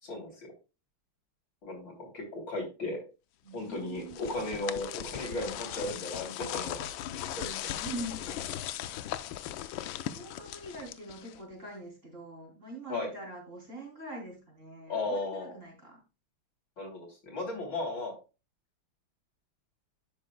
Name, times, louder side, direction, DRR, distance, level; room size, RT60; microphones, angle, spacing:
voice 1, 0.0-0.5 1.6-3.0 3.5-6.9 7.4-7.8 8.3-8.4 12.9-13.1 14.9-15.6 16.8-18.1, left 2 dB, 55° left, 1 dB, 3.9 m, -36 dB
voice 2, 3.4-4.2 7.6-8.3 10.1-16.0, right 1 dB, 35° right, 0 dB, 3.5 m, -43 dB
sound 1, 3.7-11.5, left 12 dB, 75° left, 1.3 m, -38 dB
11.0 x 8.3 x 2.3 m, 0.30 s
omnidirectional pair, 2.4 m